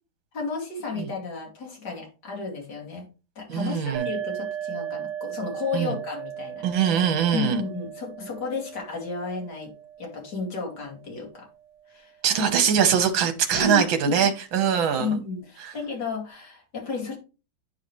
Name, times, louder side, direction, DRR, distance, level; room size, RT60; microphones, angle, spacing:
voice 1, 0.3-3.0 3.4-6.8 7.3-9.7 10.0-11.5 11.9-12.2 13.5-14.3 15.0-17.2, left 4 dB, 50° left, -1 dB, 3.0 m, -32 dB
voice 2, 3.5-4.1 5.7-5.9 6.6-7.6 12.2-15.2 15.6-15.7, right 8 dB, 70° right, 8 dB, 1.8 m, -22 dB
sound 1, 3.9-11.4, right 10 dB, 55° right, 1.1 m, -37 dB
9.8 x 5.0 x 3.2 m, 0.32 s
omnidirectional pair, 2.3 m